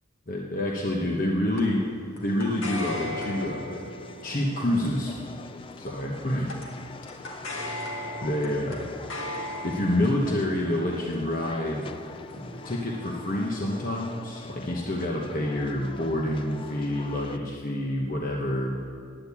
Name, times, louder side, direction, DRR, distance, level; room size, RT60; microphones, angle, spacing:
voice 1, 0.3-1.8 2.2-3.8 4.2-5.1 5.8-6.6 8.2-8.9 9.6-11.9 12.3-18.8, left 1 dB, 40° left, -1 dB, 1.1 m, -28 dB
sound 1, 1.6-14.2, left 1 dB, 70° left, 1.8 m, -40 dB
sound 2, 2.2-17.4, left 3 dB, 25° left, 0.3 m, -44 dB
9.9 x 9.0 x 8.5 m, 2.2 s
head